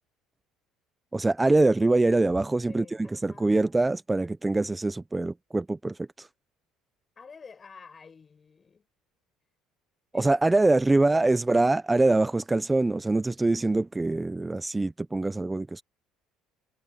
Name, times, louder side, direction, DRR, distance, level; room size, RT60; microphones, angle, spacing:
voice 1, 1.1-6.3 10.1-15.8, right 2 dB, 15° right, 0.7 m, -24 dB
voice 2, 2.5-3.7 7.2-8.9 10.1-11.3, left 5 dB, 30° left, 7.2 m, -50 dB
supercardioid pair, 95°, 0 cm